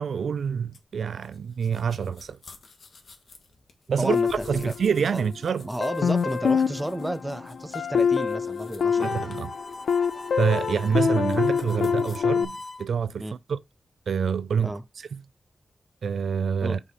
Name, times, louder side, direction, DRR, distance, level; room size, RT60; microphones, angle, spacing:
voice 1, 0.0-2.4 3.9-5.7 9.0-9.5 10.4-13.6 14.1-15.2 16.0-16.8, right 6 dB, 80° right, 0.4 m, -27 dB
sound 1, 0.7-12.2, left 4 dB, 65° left, 1.4 m, -52 dB
voice 2, 4.0-4.7 5.1-5.2 5.6-9.2 13.2-13.3 14.6-14.8 16.6-16.8, right 1 dB, 10° right, 0.6 m, -32 dB
sound 2, 4.1-5.4 5.8-12.4, left 6 dB, 85° left, 0.5 m, -26 dB
Harmonica, 8.8-12.9, left 2 dB, 20° left, 0.8 m, -41 dB
5.4 x 4.1 x 4.7 m
wide cardioid pair, 130°, 0 cm